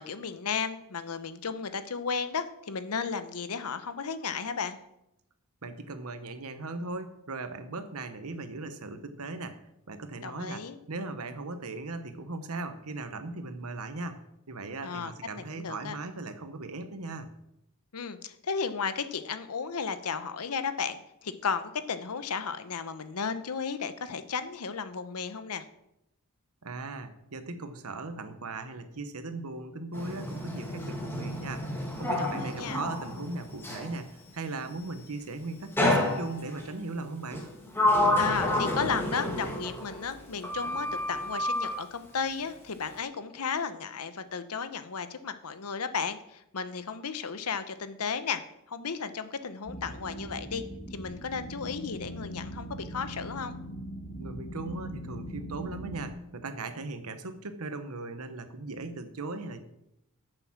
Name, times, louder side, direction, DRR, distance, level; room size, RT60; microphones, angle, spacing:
voice 1, 0.0-4.8 10.2-10.8 14.8-16.0 17.9-25.6 32.2-32.8 38.2-48.4 48.7-50.6 50.9-53.6, left 5 dB, 85° left, 11 dB, 0.8 m, -34 dB
voice 2, 5.6-9.6 9.9-14.2 14.5-17.3 26.6-37.5 54.2-59.6, right 3 dB, 75° right, 9 dB, 1.1 m, -38 dB
Sliding door, 29.9-34.0 35.8-36.7 37.3-40.2 40.4-41.8, left 1 dB, 10° left, 1.8 m, -29 dB
sound 1, 49.6-56.1, equal, 40° left, 1.6 m, -40 dB
9.4 x 6.8 x 6.1 m, 0.82 s
head